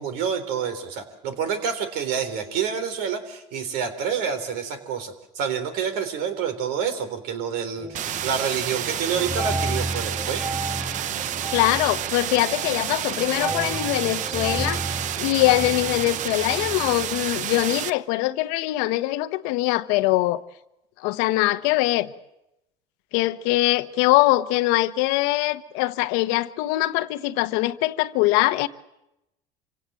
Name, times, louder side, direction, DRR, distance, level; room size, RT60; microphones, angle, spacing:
voice 1, 0.0-10.4, right 7 dB, 70° right, 3.6 m, -28 dB
sound 1, 7.8-8.6 8.8-17.3, right 1 dB, 5° right, 0.8 m, -33 dB
sound 2, 7.9-17.9, right 11 dB, 50° right, 0.8 m, -30 dB
voice 2, 11.5-14.8 15.2-20.4 21.0-22.1 23.1-28.7, left 18 dB, 80° left, 1.1 m, -22 dB
26.5 x 17.0 x 7.8 m
supercardioid pair, 110°, 16 cm